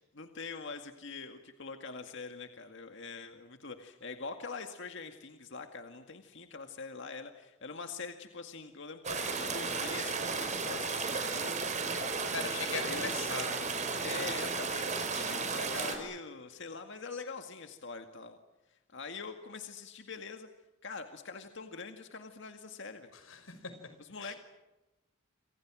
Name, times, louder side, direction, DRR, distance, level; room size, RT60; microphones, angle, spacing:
voice 1, 0.1-11.5 12.8-13.0 14.0-18.4 18.7-20.5 20.8-23.1 24.0-24.3, left 4 dB, 65° left, 6 dB, 2.1 m, -44 dB
sound 1, 9.0-16.0, right 4 dB, 40° right, 5.0 m, -34 dB
voice 2, 12.3-14.2 23.1-23.7 24.2-24.4, left 4 dB, 90° left, 9 dB, 5.6 m, -40 dB
28.0 x 27.0 x 6.3 m, 1.0 s
head